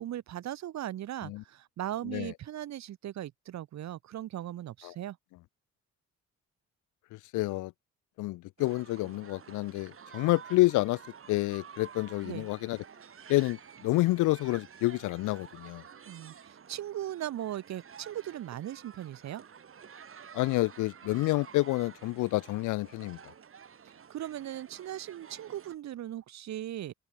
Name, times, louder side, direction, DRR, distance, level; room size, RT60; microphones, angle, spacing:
voice 1, 0.0-5.2 12.2-12.5 16.1-19.4 23.9-26.9, right 12 dB, 65° right, 1.1 m, -38 dB
voice 2, 7.1-7.7 8.2-11.0 11.3-12.8 13.3-15.8 20.3-23.2, left 19 dB, 85° left, 0.5 m, -29 dB
sound 1, 8.6-25.8, right 7 dB, 45° right, 3.4 m, -51 dB
cardioid pair, 90°, 30 cm